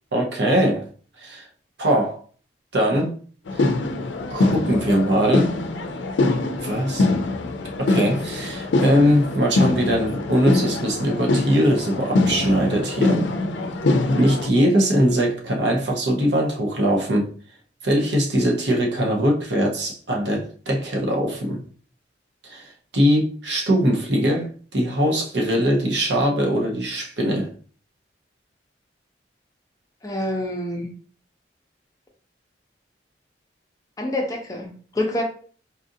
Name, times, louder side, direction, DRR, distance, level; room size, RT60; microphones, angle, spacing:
voice 1, 0.1-0.9 1.2-1.5 1.8-2.2 2.7-3.1 3.5-3.6 4.3-5.6 6.6-7.1 7.9-13.3 14.1-17.3 17.8-21.6 22.4-27.5, equal, 70° right, 0.8 m, -21 dB
sound 1, 3.5-14.5, left 2 dB, 85° left, 0.5 m, -23 dB
voice 2, 30.0-30.9 34.0-35.2, left 1 dB, 20° left, 0.6 m, -27 dB
4.2 x 2.5 x 2.6 m
head